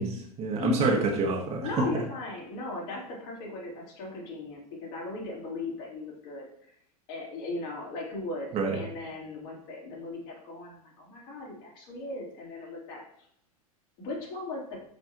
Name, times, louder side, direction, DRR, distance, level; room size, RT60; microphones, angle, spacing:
voice 1, 0.0-1.8 8.5-8.8, right 3 dB, 35° right, 1 dB, 1.9 m, -27 dB
voice 2, 0.6-1.1 1.6-6.4 7.1-13.0 14.0-14.8, left 2 dB, 50° left, -3 dB, 3.7 m, -37 dB
12.5 x 5.2 x 3.1 m, 0.69 s
figure-of-eight pair, 85°, 19 cm